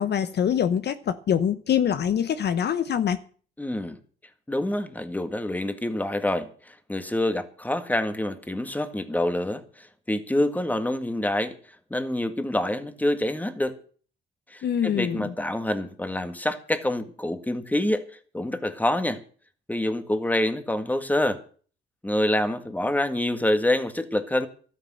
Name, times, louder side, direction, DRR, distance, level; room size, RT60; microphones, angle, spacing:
voice 1, 0.0-3.2 14.6-15.3, left 8 dB, 55° left, 0.9 m, -24 dB
voice 2, 3.6-4.0 4.5-11.5 11.9-13.8 14.5-18.1 18.3-19.2 19.7-21.4 22.0-24.5, left 1 dB, 10° left, 1.9 m, -26 dB
12.5 x 9.8 x 7.7 m
cardioid pair, 90°, 20 cm